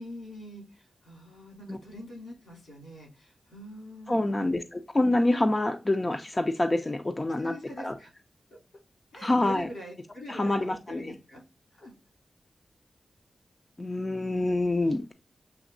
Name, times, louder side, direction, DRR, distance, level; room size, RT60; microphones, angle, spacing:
voice 1, 0.0-4.5 7.4-8.1 9.1-11.4 11.8-11.9, equal, 85° left, -1 dB, 2.8 m, -44 dB
voice 2, 4.1-7.9 9.2-9.7 10.3-11.2 13.8-15.1, left 2 dB, 30° left, 5 dB, 0.6 m, -27 dB
7.0 x 2.8 x 2.6 m, 0.30 s
cardioid pair, 45°, 0 cm